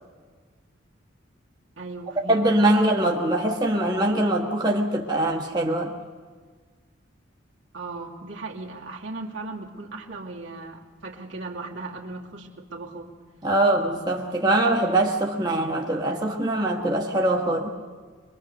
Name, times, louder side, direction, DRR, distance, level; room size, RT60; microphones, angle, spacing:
voice 1, 1.8-2.4 7.7-13.1, right 3 dB, 75° right, -2 dB, 2.6 m, -37 dB
voice 2, 2.3-5.9 13.4-17.7, right 1 dB, 20° right, -1 dB, 1.6 m, -22 dB
24.0 x 22.5 x 6.8 m, 1.5 s
head